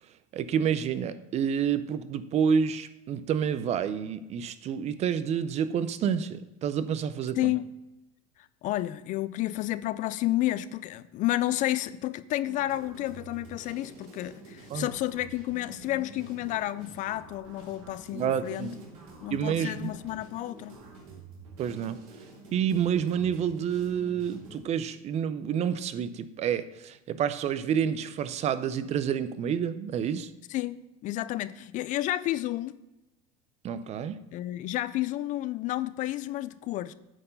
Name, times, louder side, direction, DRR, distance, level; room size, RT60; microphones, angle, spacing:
voice 1, 0.3-7.5 14.7-14.9 18.1-18.8 19.3-20.0 21.6-22.0 22.5-30.3 33.6-34.2, right 8 dB, 40° right, 0.5 m, -29 dB
voice 2, 7.4-7.7 8.4-18.7 19.2-20.8 30.5-32.8 34.3-36.9, left 15 dB, 45° left, 0.4 m, -31 dB
sound 1, 12.4-24.6, right 3 dB, 85° right, 3.1 m, -49 dB
8.9 x 4.4 x 5.6 m
supercardioid pair, 115°, 18 cm